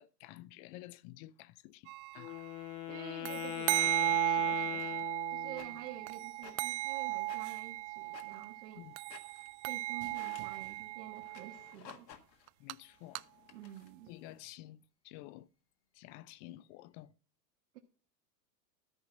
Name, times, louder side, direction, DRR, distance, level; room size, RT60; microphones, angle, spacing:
voice 1, 0.0-2.4 8.8-8.9 12.6-13.2 14.1-14.8 15.0-15.5 15.9-17.1, left 16 dB, 35° left, 0.4 m, -51 dB
sound 1, 1.9-2.4 3.3-8.7 8.9-11.9 12.5-12.7 13.2-13.3, right 19 dB, 45° right, 0.5 m, -36 dB
Wind instrument woodwind instrument, 2.1-5.8, left 17 dB, 65° left, 0.8 m, -40 dB
voice 2, 2.9-8.9 9.7-12.1 13.5-14.1 17.7-17.8, right 11 dB, 70° right, 1.6 m, -49 dB
sound 2, 3.7-3.9 4.8-5.1 5.5-6.0 6.3-6.8 7.3-8.5 8.9-9.6 10.0-10.6 11.2-12.5 12.9-13.9, left 9 dB, 90° left, 1.6 m, -56 dB
13.5 x 5.7 x 5.2 m
hypercardioid pair, 110°, 49 cm